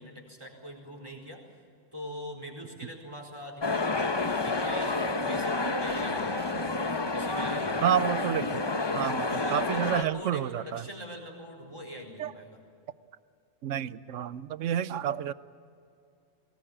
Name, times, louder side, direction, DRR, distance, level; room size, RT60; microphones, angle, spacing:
voice 1, 0.0-1.4 1.9-6.5 7.1-7.9 9.0-12.6, equal, 20° right, 1 dB, 4.5 m, -43 dB
sound 1, 3.6-10.0, left 3 dB, 25° left, 0.7 m, -29 dB
sound 2, 5.9-7.9, right 4 dB, 45° right, 1.5 m, -45 dB
voice 2, 7.8-8.6 8.9-10.9 12.2-12.3 13.6-15.3, right 10 dB, 80° right, 16 dB, 1.1 m, -29 dB
22.0 x 19.5 x 8.8 m, 2.5 s
omnidirectional pair, 1.3 m